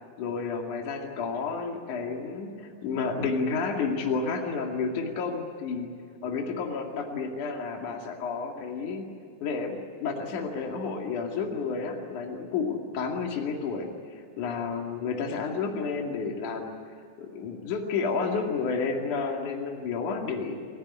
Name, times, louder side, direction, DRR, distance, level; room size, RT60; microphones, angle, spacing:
voice 1, 0.2-5.9 6.2-9.0 9.4-20.8, left 4 dB, 65° left, 1 dB, 3.7 m, -31 dB
29.0 x 17.0 x 9.9 m, 2.4 s
omnidirectional pair, 4.0 m